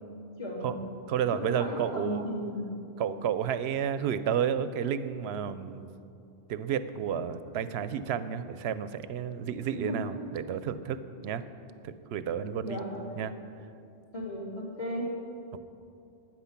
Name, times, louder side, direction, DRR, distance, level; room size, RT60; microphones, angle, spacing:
voice 1, 0.4-0.7 1.3-2.5 9.7-10.0 12.6-12.9 14.1-15.1, left 1 dB, 30° left, -5 dB, 3.1 m, -35 dB
voice 2, 1.1-2.2 3.0-5.9 6.5-11.0 11.2-11.4 11.8-12.8 13.2-13.3, right 8 dB, 75° right, 13 dB, 0.8 m, -31 dB
12.0 x 9.1 x 5.9 m, 2.6 s
omnidirectional pair, 1.1 m